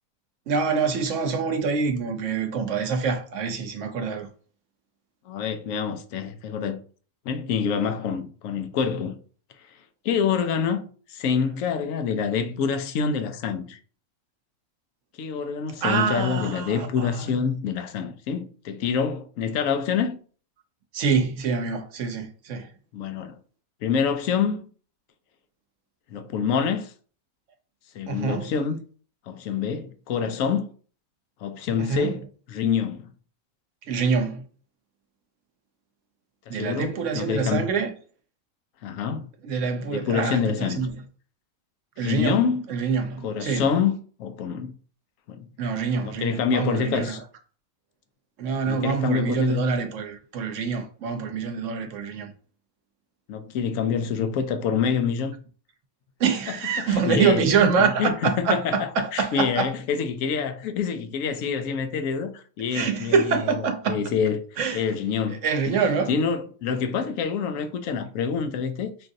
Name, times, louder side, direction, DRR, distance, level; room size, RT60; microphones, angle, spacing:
voice 1, 0.5-4.3 15.8-17.3 20.9-22.7 28.1-28.5 31.8-32.1 33.9-34.4 36.5-37.9 39.4-40.9 42.0-42.4 42.7-43.7 45.6-47.2 48.4-52.3 56.2-59.7 62.7-64.0 64.6-64.8 65.3-66.1, right 5 dB, 65° right, 0.9 m, -25 dB
voice 2, 5.3-6.8 7.3-9.2 10.0-13.8 15.2-20.2 22.9-23.4 23.8-24.6 26.1-26.9 27.9-28.8 29.3-30.7 31.4-32.2 32.5-33.1 36.5-37.6 38.8-39.2 39.9-40.8 42.0-42.7 43.2-43.9 44.2-44.7 45.3-45.5 46.2-47.2 48.7-49.7 53.3-55.4 56.8-64.4 64.7-65.4 65.7-65.8 66.1-68.9, left 6 dB, 75° left, 1.0 m, -26 dB
5.8 x 2.5 x 2.5 m
omnidirectional pair, 1.5 m